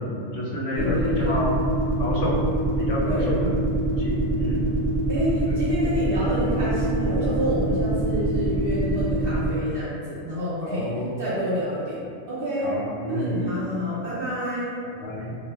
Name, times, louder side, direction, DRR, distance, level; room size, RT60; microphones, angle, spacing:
voice 1, 0.0-1.6 2.0-2.4 2.8-3.6 4.0-4.7 5.5-5.6 10.6-11.1 12.6-13.6 13.9-14.1 15.0-15.4, left 1 dB, 75° left, -4 dB, 0.9 m, -29 dB
voice 2, 0.7-1.4 3.1-3.4 5.1-10.9 11.2-12.7 13.1-14.7, equal, 60° right, -10 dB, 0.7 m, -28 dB
sound 1, 0.8-9.5, right 1 dB, 35° left, 0.6 m, -24 dB
2.1 x 2.0 x 3.4 m, 2.3 s
omnidirectional pair, 1.3 m